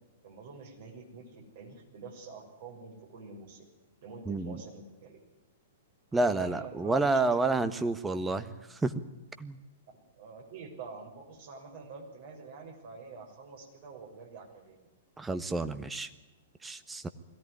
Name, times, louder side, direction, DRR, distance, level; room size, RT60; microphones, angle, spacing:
voice 1, 0.2-3.7 4.0-5.2 6.1-7.4 10.2-14.9, right 4 dB, 55° right, 2 dB, 6.5 m, -47 dB
voice 2, 4.3-4.6 6.1-8.5 8.8-8.9 9.4-9.6 15.2-16.1 16.6-17.1, right 3 dB, 10° right, 11 dB, 1.4 m, -29 dB
21.5 x 16.5 x 9.8 m, 1.1 s
figure-of-eight pair, 110°, 0 cm